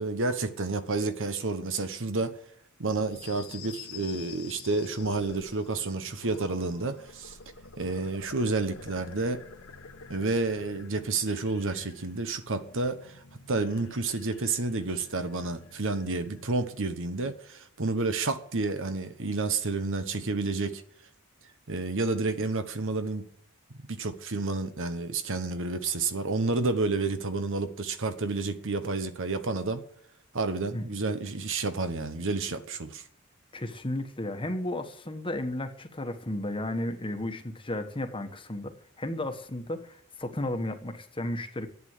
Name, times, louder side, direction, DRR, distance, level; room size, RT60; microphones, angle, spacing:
voice 1, 0.0-2.4 2.8-7.4 7.8-9.4 10.1-20.8 21.7-23.3 23.9-29.8 30.3-33.0, right 3 dB, 65° right, 1.2 m, -30 dB
sound 1, 2.9-16.7, left 4 dB, 75° left, 1.4 m, -48 dB
voice 2, 33.5-41.7, left 1 dB, 25° left, 1.3 m, -33 dB
11.0 x 8.7 x 8.2 m
head